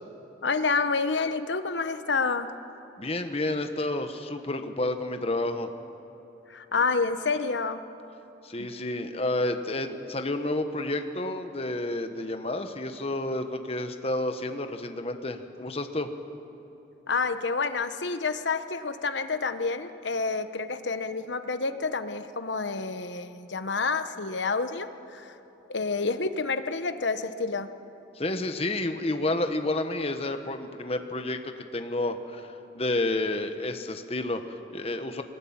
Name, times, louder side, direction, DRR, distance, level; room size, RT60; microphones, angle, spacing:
voice 1, 0.4-2.5 6.5-7.8 8.6-8.7 17.1-25.3 25.7-27.7, left 4 dB, 80° left, 10 dB, 1.1 m, -29 dB
voice 2, 3.0-5.7 8.4-16.1 28.2-35.2, left 2 dB, 35° left, 7 dB, 1.2 m, -30 dB
23.0 x 19.0 x 8.8 m, 3.0 s
head